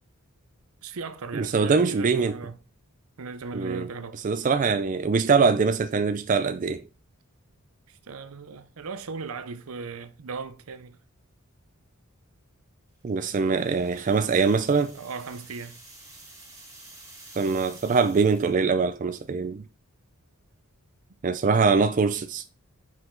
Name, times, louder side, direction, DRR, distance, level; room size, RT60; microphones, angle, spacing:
voice 1, 0.8-2.6 3.2-4.2 7.9-11.0 14.8-15.8, right 4 dB, 75° right, 0.7 m, -37 dB
voice 2, 1.3-2.3 3.5-3.9 4.2-6.8 13.0-14.9 17.4-19.6 21.2-22.5, right 4 dB, 35° right, 0.4 m, -23 dB
sound 1, 13.1-18.7, right 2 dB, 15° right, 2.3 m, -50 dB
5.7 x 5.0 x 3.8 m
head